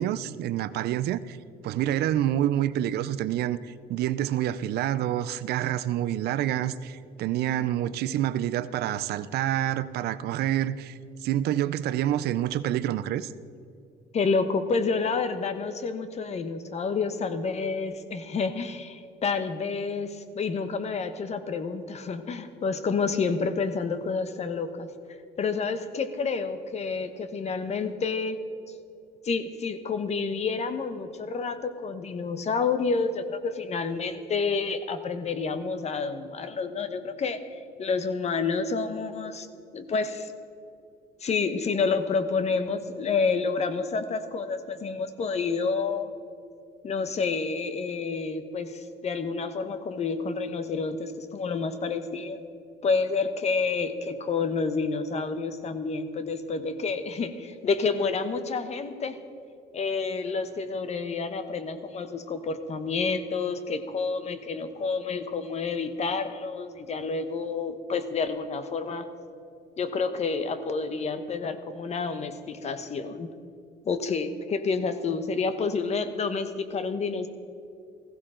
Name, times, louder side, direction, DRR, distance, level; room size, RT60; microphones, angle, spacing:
voice 1, 0.0-1.4 1.6-13.3, right 12 dB, 70° right, 0.5 m, -27 dB
voice 2, 14.1-24.9 25.4-28.4 29.2-39.5 39.7-40.3 41.2-46.1 46.8-52.4 52.8-59.2 59.7-69.1 69.8-73.3 73.8-77.3, left 4 dB, 40° left, 1.1 m, -29 dB
15.5 x 15.5 x 3.8 m
cardioid pair, 110°, 17 cm